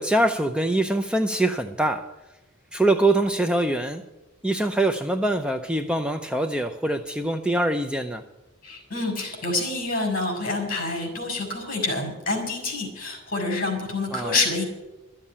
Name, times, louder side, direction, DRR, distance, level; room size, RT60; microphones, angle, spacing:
voice 1, 0.0-2.1 2.7-4.0 4.4-8.2 14.1-14.4, right 1 dB, 5° right, 6 dB, 0.5 m, -24 dB
voice 2, 8.6-14.6, left 3 dB, 45° left, 4 dB, 4.8 m, -27 dB
13.0 x 7.4 x 9.8 m, 1.0 s
head